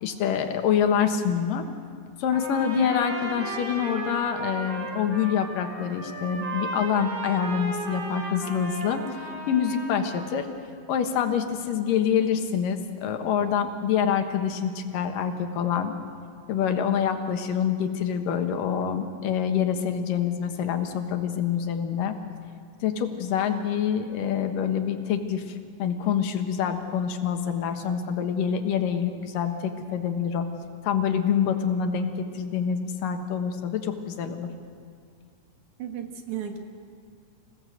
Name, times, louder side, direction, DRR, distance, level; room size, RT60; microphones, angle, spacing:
voice 1, 0.0-1.7 2.2-9.0 9.5-10.5 10.9-15.9 16.5-22.2 22.8-30.5 30.8-34.5, left 8 dB, 80° left, 6 dB, 3.0 m, -26 dB
Trumpet, 2.3-10.4, right 3 dB, 40° right, 4.0 m, -35 dB
voice 2, 35.8-36.6, right 9 dB, 65° right, 4 dB, 2.9 m, -34 dB
26.5 x 17.0 x 7.8 m, 2.3 s
omnidirectional pair, 3.8 m